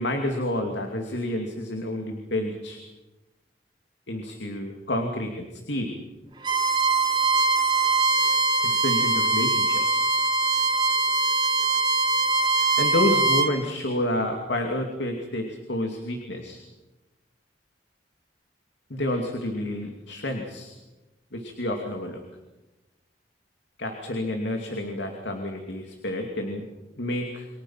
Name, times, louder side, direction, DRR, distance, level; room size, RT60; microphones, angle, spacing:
voice 1, 0.0-2.8 4.1-6.0 8.6-10.1 12.8-16.6 18.9-20.7 21.3-22.2 23.8-26.7 27.0-27.5, left 1 dB, 75° left, 3 dB, 2.7 m, -29 dB
Bowed string instrument, 6.4-13.5, right 4 dB, 25° right, 2.0 m, -22 dB
29.0 x 24.5 x 5.8 m, 1.1 s
head